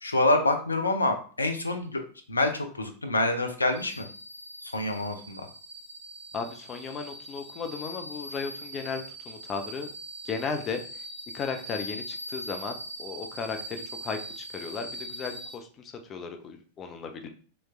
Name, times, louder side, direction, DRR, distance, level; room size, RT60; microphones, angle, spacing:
voice 1, 0.0-2.0 2.3-4.1 4.7-5.5, left 2 dB, 80° left, 6 dB, 0.5 m, -26 dB
sound 1, 3.7-15.5, equal, 80° right, 1.4 m, -41 dB
voice 2, 6.3-9.9 10.2-10.8 11.3-17.3, left 5 dB, 25° left, 5 dB, 0.5 m, -35 dB
3.1 x 3.1 x 2.3 m, 0.42 s
figure-of-eight pair, 90°, 0 cm